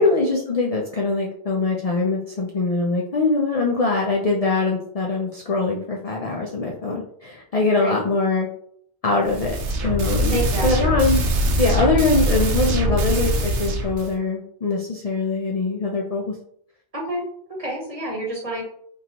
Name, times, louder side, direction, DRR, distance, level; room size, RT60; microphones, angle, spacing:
voice 1, 0.0-8.5 9.0-9.6 9.8-11.2 11.6-16.3, left 3 dB, 50° left, -1 dB, 0.4 m, -22 dB
sound 1, 9.2-14.1, right 1 dB, 85° right, 1.0 m, -22 dB
voice 2, 10.3-10.9 16.9-17.2 17.6-18.6, right 1 dB, 35° right, -2 dB, 1.0 m, -28 dB
3.8 x 2.9 x 2.8 m, 0.66 s
omnidirectional pair, 1.2 m